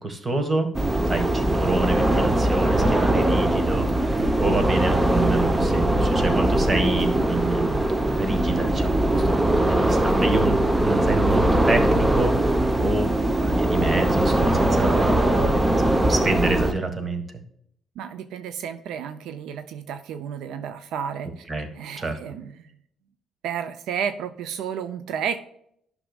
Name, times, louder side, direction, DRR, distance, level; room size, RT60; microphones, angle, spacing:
voice 1, 0.0-0.7 1.1-13.1 13.4-15.7 16.1-17.2 21.5-21.7 22.0-22.1, right 2 dB, 30° right, 7 dB, 1.6 m, -28 dB
sound 1, 0.7-16.7, right 1 dB, 15° right, 0.8 m, -21 dB
voice 2, 18.0-21.4 21.7-22.7 23.4-25.4, right 8 dB, 85° right, 10 dB, 0.5 m, -32 dB
11.5 x 6.0 x 2.3 m, 0.70 s
cardioid pair, 90°, 0 cm